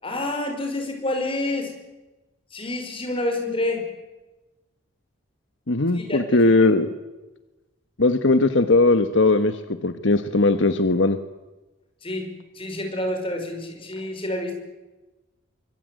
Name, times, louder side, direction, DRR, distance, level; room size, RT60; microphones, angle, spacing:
voice 1, 0.0-1.7 2.5-3.9 5.9-6.7 12.0-14.5, left 1 dB, 30° left, 4 dB, 5.8 m, -28 dB
voice 2, 5.7-6.9 8.0-9.5 9.8-11.2, left 2 dB, 70° left, 10 dB, 1.3 m, -19 dB
24.5 x 22.5 x 9.5 m, 1.1 s
head